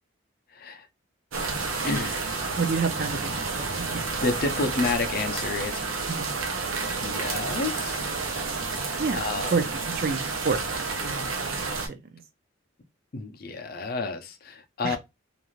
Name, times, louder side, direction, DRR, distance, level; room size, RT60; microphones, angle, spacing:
voice 1, 0.5-0.9 1.8-2.4 4.2-6.1 7.0-8.1 8.8-9.6 13.1-15.0, left 3 dB, 45° left, 0.5 m, -30 dB
sound 1, 1.3-11.9, right 4 dB, 85° right, 0.7 m, -30 dB
voice 2, 2.6-4.0 6.1-6.3 9.0-9.2 9.5-11.3 11.8-12.0 14.8-15.0, right 4 dB, 45° right, 0.4 m, -29 dB
2.5 x 2.4 x 3.0 m
head